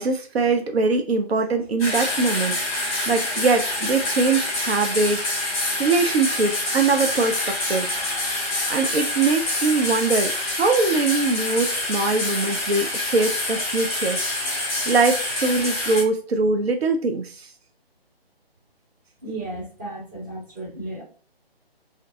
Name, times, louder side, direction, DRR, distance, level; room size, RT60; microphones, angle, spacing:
voice 1, 0.0-7.9 8.7-14.2 14.9-17.5, right 3 dB, 80° right, 6 dB, 0.5 m, -22 dB
sound 1, 1.8-16.0, left 1 dB, 15° left, 0.9 m, -26 dB
voice 2, 19.2-21.0, right 2 dB, 20° right, -5 dB, 0.9 m, -34 dB
2.4 x 2.2 x 2.6 m, 0.40 s
figure-of-eight pair, 150°, 31 cm